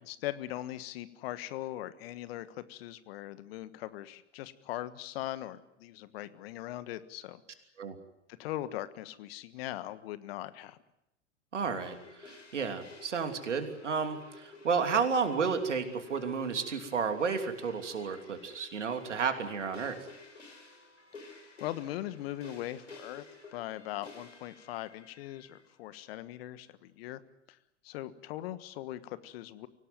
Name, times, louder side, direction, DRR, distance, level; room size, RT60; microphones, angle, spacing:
voice 1, 0.0-7.4 8.4-10.8 21.6-23.2 23.5-27.2 27.5-27.6 27.8-29.7, left 14 dB, 55° left, 14 dB, 1.5 m, -40 dB
voice 2, 11.5-20.0, right 5 dB, 80° right, 7 dB, 3.1 m, -32 dB
sound 1, 11.8-25.7, left 3 dB, 85° left, 5.0 m, -53 dB
24.5 x 17.5 x 9.2 m, 0.84 s
figure-of-eight pair, 95°, 35 cm